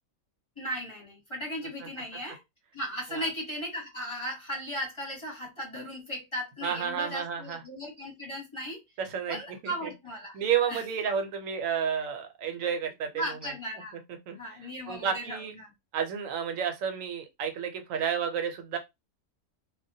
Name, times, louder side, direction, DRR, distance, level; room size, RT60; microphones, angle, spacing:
voice 1, 0.6-2.4 2.7-8.8 9.3-10.4 10.7-10.8 13.1-14.0 14.3-15.7, equal, 25° left, 0.9 m, -36 dB
voice 2, 6.6-7.6 9.0-9.9 10.3-13.5 14.3-15.5 15.9-18.8, right 7 dB, 75° right, 1.0 m, -31 dB
2.2 x 2.1 x 2.6 m
omnidirectional pair, 1.4 m